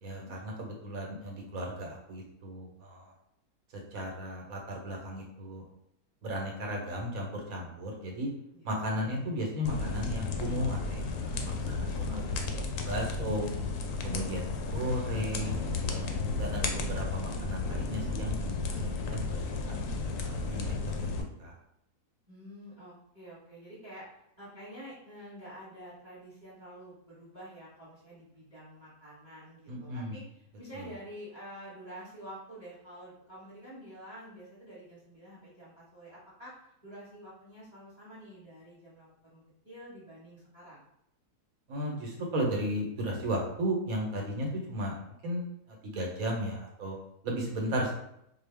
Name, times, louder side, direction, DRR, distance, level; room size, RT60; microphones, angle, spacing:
voice 1, 0.0-3.1 3.9-5.6 6.2-8.3 8.6-11.4 11.6-12.2 12.8-13.5 14.0-14.5 14.7-16.0 16.4-19.7 20.2-20.7 21.0-21.5 29.7-30.2 30.7-30.9 41.7-44.9 45.2-45.4 45.8-47.0 47.2-47.9, equal, 65° right, 0 dB, 1.3 m, -35 dB
sound 1, 9.6-21.2, left 3 dB, 70° left, 0.8 m, -33 dB
voice 2, 14.3-15.0 22.3-24.1 24.4-40.8, equal, 20° right, -7 dB, 1.3 m, -48 dB
4.5 x 2.3 x 3.4 m, 0.77 s
omnidirectional pair, 1.7 m